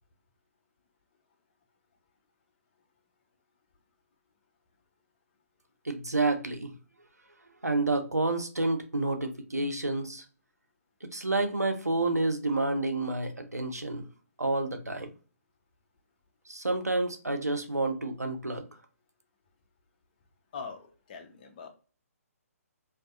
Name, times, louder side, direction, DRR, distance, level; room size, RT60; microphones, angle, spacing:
voice 1, 5.8-6.7 7.6-10.2 11.0-14.0 14.4-15.1 16.5-18.7, right 2 dB, 85° right, 0.5 m, -29 dB
voice 2, 20.5-21.7, left 5 dB, 35° left, 0.5 m, -42 dB
2.4 x 2.2 x 2.5 m
figure-of-eight pair, 135°, 8 cm